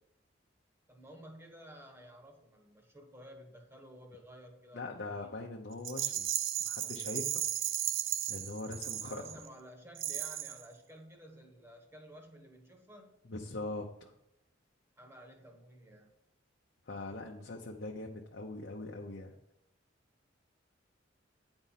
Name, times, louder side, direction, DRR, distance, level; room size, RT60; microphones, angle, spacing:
voice 1, 0.9-5.4 9.0-13.2 15.0-16.1, equal, 10° right, 2 dB, 1.3 m, -53 dB
voice 2, 4.7-6.3 6.6-7.4 8.3-9.3 13.3-14.1 16.9-19.3, left 2 dB, 60° left, -1 dB, 0.8 m, -41 dB
Rattle, 5.8-9.5 10.0-10.7, right 12 dB, 85° right, 0.5 m, -35 dB
9.5 x 4.4 x 5.7 m, 0.80 s
head